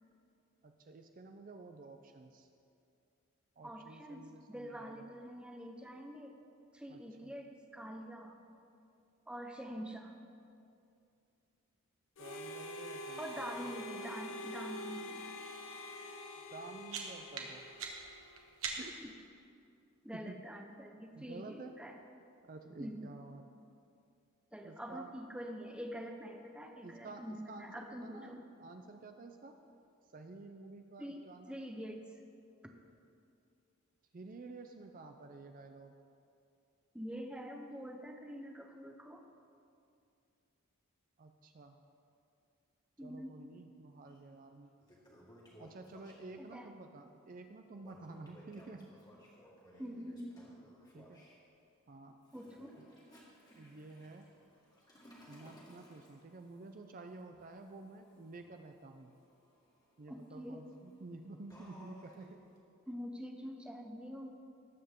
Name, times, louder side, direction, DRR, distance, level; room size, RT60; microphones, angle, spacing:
voice 1, 0.6-2.5 3.6-5.1 6.9-7.3 12.2-13.6 16.5-17.7 18.8-19.0 20.1-20.4 21.1-21.7 22.4-23.4 24.6-25.2 26.8-28.3 28.6-29.6 30.1-31.5 34.1-35.9 41.2-41.8 43.0-44.7 45.6-48.9 50.9-51.2 51.9-52.2 53.5-54.3 55.3-59.2 60.0-62.4, right 3 dB, 40° right, 6 dB, 0.4 m, -51 dB
voice 2, 3.6-6.3 6.7-8.4 9.3-10.1 13.2-15.2 19.0-19.1 20.0-22.0 22.8-23.1 24.5-28.5 31.0-32.0 32.6-32.7 36.9-39.2 43.0-43.3 46.4-46.7 49.8-50.4 52.3-52.7 60.1-60.6 62.9-64.4, equal, 5° right, 3 dB, 0.7 m, -45 dB
Harmonica, 12.2-18.5, left 1 dB, 65° left, 0.8 m, -46 dB
ignition by two stones, 16.5-19.2, right 5 dB, 70° right, 1.4 m, -44 dB
Toilet flush, 44.1-44.2 44.6-46.5 47.8-51.4 52.2-62.6, equal, 20° left, 1.8 m, -60 dB
19.0 x 7.8 x 3.7 m, 2.5 s
head